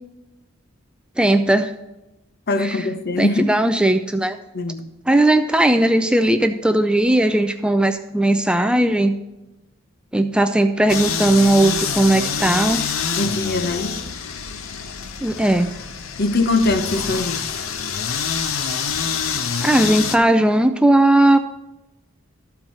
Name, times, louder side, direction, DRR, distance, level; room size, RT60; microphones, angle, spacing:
voice 1, 1.2-1.7 2.6-2.8 3.2-4.4 5.1-9.1 10.1-12.8 15.2-15.7 19.6-21.4, right 1 dB, 5° right, 0.3 m, -17 dB
voice 2, 2.5-3.5 4.5-4.8 13.2-14.0 16.2-17.6, left 2 dB, 50° left, 0.7 m, -22 dB
sound 1, 10.9-20.2, left 6 dB, 90° left, 0.7 m, -26 dB
13.0 x 4.6 x 5.3 m
head